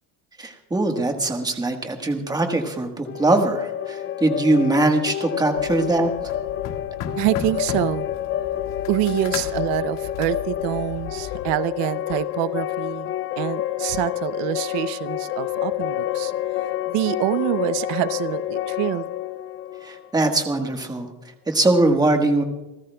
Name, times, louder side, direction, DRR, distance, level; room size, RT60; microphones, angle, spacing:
voice 1, 0.4-6.1 19.8-21.1 21.5-22.4, right 2 dB, 10° right, 4 dB, 1.4 m, -21 dB
sound 1, 3.1-20.8, left 12 dB, 35° left, 0.4 m, -29 dB
sound 2, 5.6-11.5, left 8 dB, 90° left, 1.9 m, -36 dB
voice 2, 7.1-8.1 8.9-16.3 16.9-19.1, right 15 dB, 80° right, 15 dB, 0.7 m, -26 dB
29.0 x 14.0 x 2.3 m, 1.0 s
cardioid pair, 160°, 41 cm